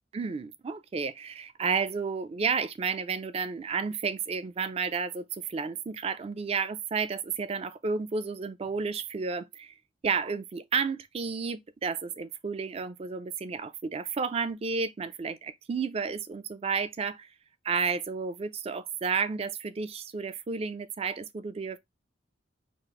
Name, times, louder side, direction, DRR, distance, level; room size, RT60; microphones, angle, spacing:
voice 1, 0.1-9.7 10.0-17.3 17.6-21.8, right 5 dB, 30° right, 0.3 m, -32 dB
4.2 x 2.5 x 2.9 m
head